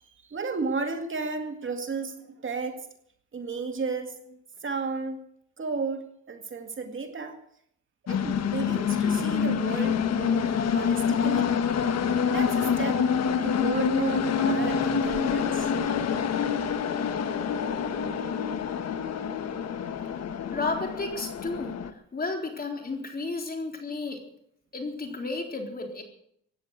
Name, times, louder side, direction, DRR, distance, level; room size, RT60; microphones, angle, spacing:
voice 1, 0.2-2.9 3.3-5.2 5.6-7.4 8.0-11.5 12.3-13.0 13.4-15.7, right 4 dB, 40° right, 5 dB, 2.2 m, -33 dB
sound 1, 8.1-21.9, left 7 dB, 55° left, 1.4 m, -26 dB
voice 2, 20.5-21.8 22.1-24.2 24.7-26.0, left 3 dB, 30° left, 3 dB, 3.9 m, -32 dB
16.5 x 10.0 x 8.2 m, 0.71 s
cardioid pair, 90°, 30 cm